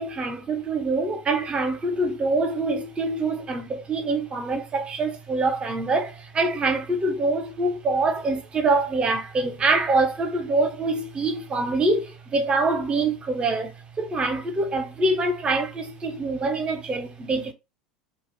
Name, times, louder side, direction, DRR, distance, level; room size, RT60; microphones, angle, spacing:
voice 1, 0.0-17.5, right 2 dB, 30° right, 0.9 m, -25 dB
2.4 x 2.4 x 3.4 m
hypercardioid pair, 80°, 4 cm